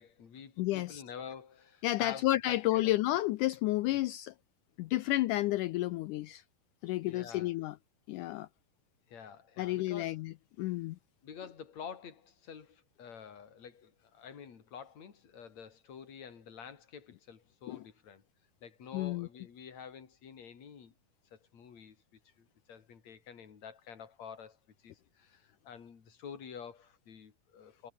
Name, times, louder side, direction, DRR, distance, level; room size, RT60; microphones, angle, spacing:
voice 1, 0.0-2.9 3.9-4.0 7.0-7.5 9.1-10.2 11.2-18.2 18.6-20.9 21.3-22.0 22.2-27.9, left 7 dB, 50° left, 4.2 m, -49 dB
voice 2, 0.6-1.0 1.8-4.3 4.8-6.4 6.8-7.8 8.1-8.5 9.6-11.0 17.7-17.8 18.9-19.3, left 16 dB, 85° left, 1.8 m, -31 dB
omnidirectional pair, 4.3 m